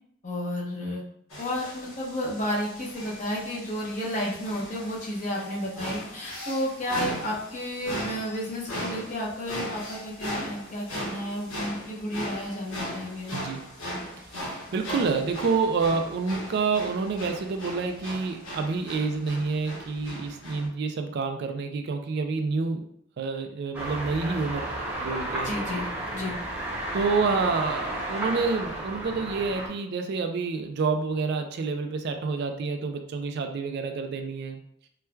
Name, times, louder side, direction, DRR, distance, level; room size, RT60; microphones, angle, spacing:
voice 1, 0.2-1.0 1.4-13.4 25.4-25.9 26.1-26.4, equal, 40° left, -4 dB, 0.8 m, -32 dB
sound 1, 1.3-20.7, equal, 85° left, 1.1 m, -38 dB
voice 2, 14.3-22.9 23.2-24.7 25.0-25.5 26.9-34.6, right 4 dB, 55° right, 6 dB, 0.3 m, -28 dB
sound 2, 23.7-29.7, right 1 dB, 10° right, 0.6 m, -32 dB
4.3 x 2.2 x 2.3 m, 0.69 s
head